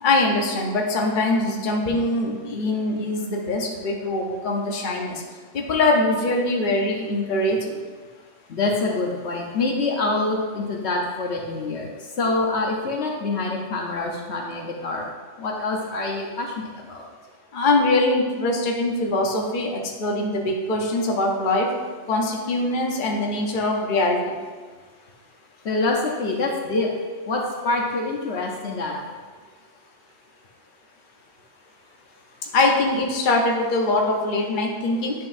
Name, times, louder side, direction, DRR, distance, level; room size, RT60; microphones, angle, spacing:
voice 1, 0.0-5.2 5.5-7.6 17.5-21.7 22.1-24.2 32.5-35.1, left 2 dB, 45° left, 0 dB, 1.0 m, -22 dB
voice 2, 8.5-11.9 12.2-15.1 15.4-17.0 25.6-26.9 27.2-29.0, left 3 dB, 65° left, 0 dB, 1.1 m, -26 dB
9.4 x 5.8 x 2.6 m, 1.5 s
omnidirectional pair, 1.2 m